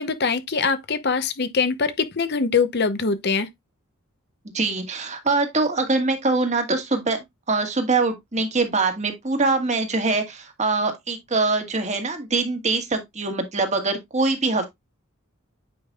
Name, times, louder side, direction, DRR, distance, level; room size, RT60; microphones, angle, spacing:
voice 1, 0.0-3.5, left 5 dB, 50° left, 0.7 m, -23 dB
voice 2, 4.5-14.7, right 3 dB, 30° right, 1.5 m, -23 dB
8.6 x 5.2 x 2.3 m
head